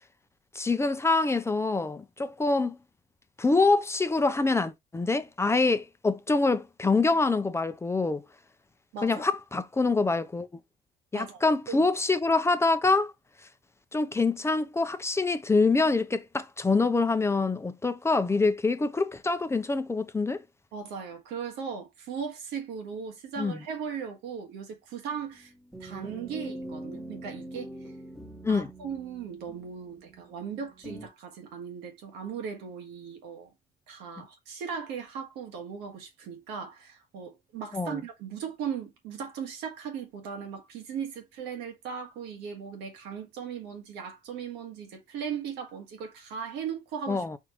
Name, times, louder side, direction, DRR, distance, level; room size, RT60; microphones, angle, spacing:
voice 1, 0.5-2.8 3.4-8.2 9.0-10.5 11.1-13.1 13.9-20.4 23.4-23.6 28.4-28.7 37.7-38.0 47.1-47.4, left 3 dB, 15° left, 0.5 m, -25 dB
voice 2, 8.9-9.3 11.1-11.4 11.7-11.9 20.7-25.5 25.8-27.7 28.5-33.5 33.9-47.2, right 7 dB, 90° right, 1.5 m, -38 dB
sound 1, 25.1-31.1, right 1 dB, ahead, 1.2 m, -43 dB
4.5 x 3.9 x 3.0 m
cardioid pair, 110°, 17 cm